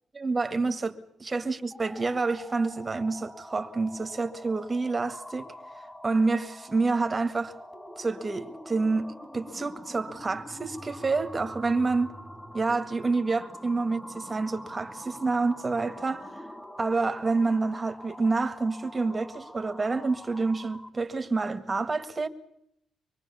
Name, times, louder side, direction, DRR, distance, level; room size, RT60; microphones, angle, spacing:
voice 1, 0.1-5.5 6.0-7.6 8.0-12.1 12.5-16.5 16.8-22.3, right 3 dB, 20° right, 1.8 m, -28 dB
sound 1, 1.6-21.0, equal, 10° left, 4.7 m, -45 dB
25.0 x 22.0 x 7.1 m
cardioid pair, 135°, 0 cm